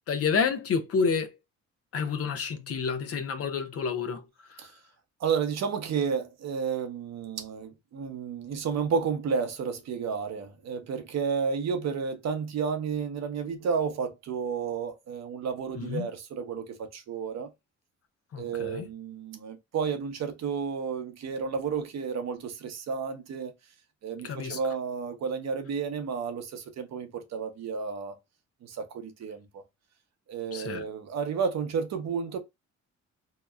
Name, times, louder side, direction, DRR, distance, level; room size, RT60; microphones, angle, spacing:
voice 1, 0.1-1.3 1.9-4.2 15.8-16.1 18.3-18.9 24.2-24.6 30.5-30.8, left 5 dB, 50° left, 0.6 m, -29 dB
voice 2, 5.2-17.5 18.4-23.5 24.0-28.1 28.6-29.6 30.3-32.4, right 6 dB, 60° right, 0.8 m, -31 dB
2.8 x 2.1 x 2.3 m
cardioid pair, 90°, 30 cm